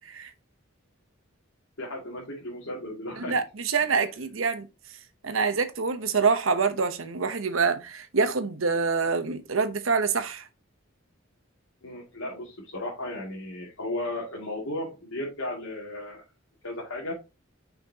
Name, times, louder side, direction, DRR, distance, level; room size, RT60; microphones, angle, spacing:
voice 1, 1.8-3.4 3.8-3.9 11.8-16.2 16.6-17.1, left 1 dB, 80° left, 2.5 m, -35 dB
voice 2, 3.2-4.7 5.2-10.4, right 5 dB, 80° right, 1.0 m, -26 dB
5.9 x 5.7 x 2.9 m
head